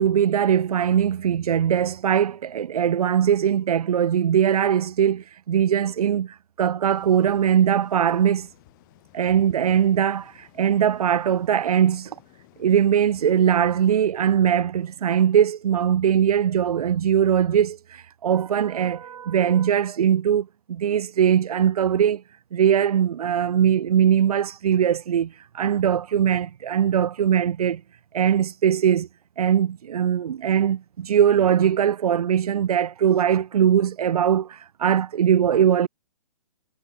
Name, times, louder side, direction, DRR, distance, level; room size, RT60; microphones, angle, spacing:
voice 1, 0.0-8.5 9.1-12.2 12.6-22.2 22.5-27.8 28.1-29.1 29.4-35.9, right 9 dB, 85° right, 0.4 m, -21 dB
Wind Through Trees, 6.9-13.8, left 20 dB, 35° left, 4.0 m, -55 dB
hypercardioid pair, 150°, 19 cm